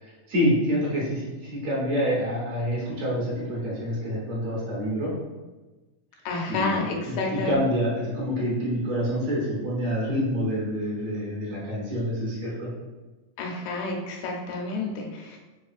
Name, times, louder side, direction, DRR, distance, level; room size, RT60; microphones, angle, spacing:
voice 1, 0.0-5.1 6.5-12.7, equal, 65° right, -6 dB, 1.8 m, -27 dB
voice 2, 6.3-7.6 13.4-15.4, left 3 dB, 85° left, 0 dB, 2.3 m, -30 dB
5.4 x 2.4 x 2.4 m, 1.2 s
omnidirectional pair, 3.8 m